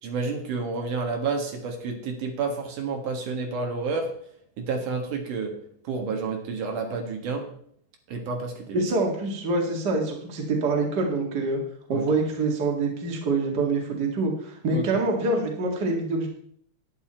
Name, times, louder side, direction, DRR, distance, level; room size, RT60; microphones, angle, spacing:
voice 1, 0.0-4.1 4.6-5.6 5.8-7.5 8.1-8.9 11.9-12.1 14.7-15.1, right 4 dB, 70° right, 3 dB, 3.0 m, -30 dB
voice 2, 8.7-11.6 11.9-16.3, right 3 dB, 35° right, 1 dB, 2.3 m, -25 dB
11.0 x 9.9 x 4.4 m, 0.65 s
omnidirectional pair, 3.8 m